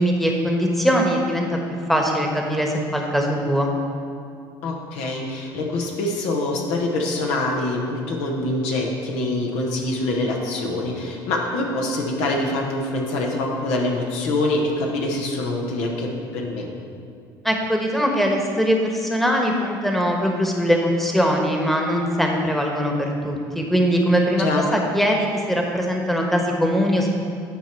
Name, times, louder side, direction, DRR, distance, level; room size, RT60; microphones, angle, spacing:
voice 1, 0.0-1.6 1.9-3.7 17.4-22.9 23.2-27.1, equal, ahead, 1 dB, 1.3 m, -21 dB
voice 2, 4.6-16.7 24.4-24.7, left 2 dB, 75° left, 0 dB, 1.2 m, -25 dB
10.5 x 4.5 x 4.5 m, 2.4 s
hypercardioid pair, 70°, 11 cm